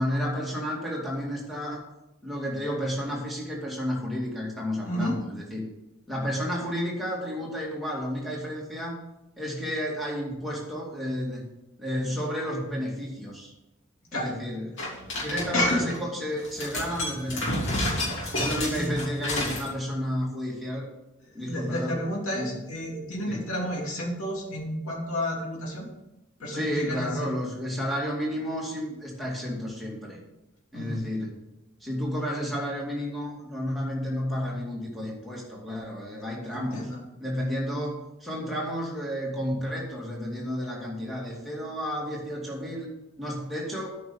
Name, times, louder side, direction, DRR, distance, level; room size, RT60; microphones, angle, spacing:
voice 1, 0.0-1.8 2.2-5.6 6.1-9.0 9.4-11.4 11.8-13.5 14.1-14.8 15.2-17.9 18.4-20.9 21.3-22.0 22.3-22.5 23.3-23.4 26.5-30.2 30.7-31.3 31.8-36.9 37.2-42.9 43.2-43.9, equal, ahead, -4 dB, 2.3 m, -31 dB
voice 2, 4.8-5.2 14.1-14.3 15.5-15.8 18.2-18.4 18.7-18.9 21.3-25.9 26.4-27.2 30.7-31.0 36.5-37.0, left 1 dB, 75° left, -3 dB, 2.9 m, -31 dB
sound 1, 14.8-16.0 16.4-19.7, left 1 dB, 55° left, 3.3 m, -30 dB
9.1 x 5.5 x 7.1 m, 0.95 s
head